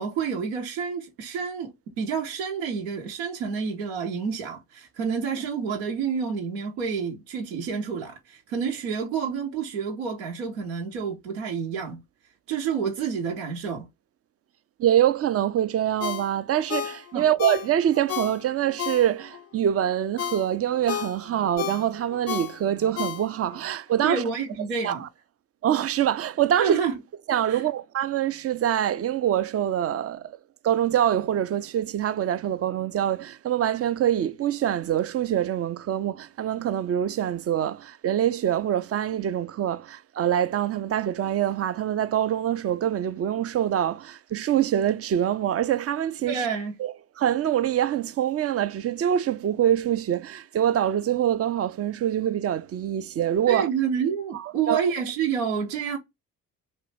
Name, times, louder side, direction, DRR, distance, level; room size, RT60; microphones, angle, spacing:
voice 1, 0.0-12.0 12.5-13.9 17.1-17.3 24.0-25.0 26.6-27.0 27.5-27.7 46.3-46.8 53.5-56.0, right 6 dB, 85° right, 0.7 m, -29 dB
voice 2, 14.8-24.2 24.8-25.1 25.6-26.8 27.3-30.3 30.6-46.4 46.8-53.7 54.7-54.8, right 10 dB, 35° right, 0.4 m, -25 dB
Ringtone, 16.0-19.4 19.9-23.6 24.0-24.1, left 9 dB, 35° left, 0.4 m, -33 dB
3.0 x 2.6 x 3.1 m
hypercardioid pair, 45°, 42 cm